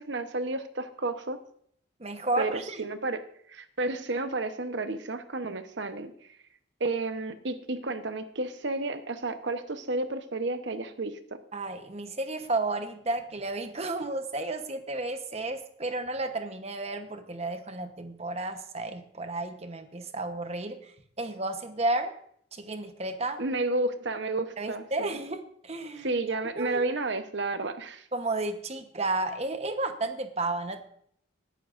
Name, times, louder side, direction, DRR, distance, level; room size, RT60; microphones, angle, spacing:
voice 1, 0.0-1.4 2.4-3.2 3.5-6.1 6.8-11.2 23.4-25.2 26.0-28.1, right 2 dB, 60° right, 9 dB, 1.0 m, -31 dB
voice 2, 2.0-2.9 11.5-20.9 21.2-22.1 22.5-23.4 24.6-26.1 26.6-26.8 28.1-30.8, right 2 dB, 30° right, 8 dB, 1.0 m, -32 dB
20.0 x 11.5 x 2.6 m, 0.65 s
head